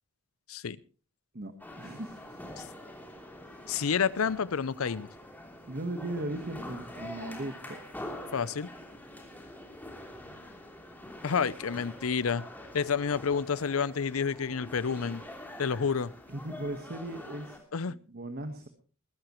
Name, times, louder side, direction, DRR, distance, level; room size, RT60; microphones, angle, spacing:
voice 1, 0.5-0.8 2.6-2.7 3.7-5.1 8.3-8.7 11.2-12.4 12.7-15.2 15.6-16.1 17.7-17.9, left 6 dB, 80° left, 20 dB, 0.6 m, -29 dB
sound 1, 1.6-17.6, left 1 dB, 10° left, 3.2 m, -45 dB
voice 2, 1.8-2.4 3.4-3.7 5.7-7.8 16.3-17.6 17.9-18.7, right 1 dB, 50° right, 7 dB, 1.4 m, -38 dB
20.5 x 14.0 x 3.1 m, 0.37 s
head